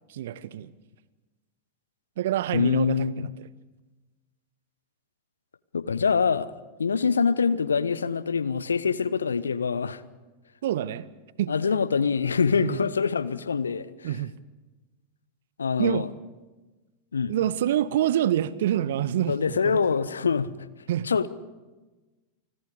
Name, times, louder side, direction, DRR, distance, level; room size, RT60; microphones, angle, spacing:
voice 1, 0.1-0.7 2.2-3.3 10.6-11.1 11.4-11.5 12.6-12.8 14.0-14.3 15.8-16.1 17.3-19.4 19.6-19.8 20.9-21.1, right 11 dB, 55° right, 0.8 m, -26 dB
voice 2, 2.5-3.3 5.7-6.5 6.8-10.0 11.5-14.2 15.6-16.1 17.1-17.4 19.3-20.5 21.0-21.3, left 5 dB, 70° left, 0.8 m, -25 dB
29.0 x 20.5 x 4.9 m
figure-of-eight pair, 90°, 0 cm